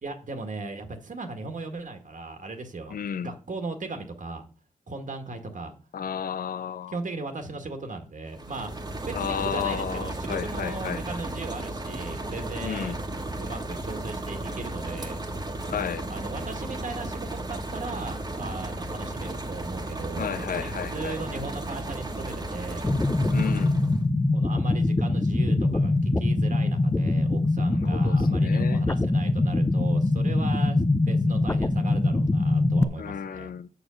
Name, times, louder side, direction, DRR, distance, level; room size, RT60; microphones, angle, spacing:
voice 1, 0.0-4.4 4.9-5.8 6.9-13.0 13.4-15.2 16.1-22.9 24.3-33.5, right 3 dB, 60° right, 1.6 m, -37 dB
voice 2, 2.9-3.3 5.9-7.0 9.1-11.0 12.6-13.0 15.7-16.1 20.2-21.2 23.3-23.7 27.8-28.8 33.0-33.7, left 8 dB, 75° left, 0.5 m, -32 dB
sound 1, 8.2-24.0, right 2 dB, 25° right, 1.5 m, -34 dB
sound 2, 22.8-32.8, left 2 dB, 15° left, 0.6 m, -23 dB
7.0 x 6.4 x 6.3 m
wide cardioid pair, 85°, 15 cm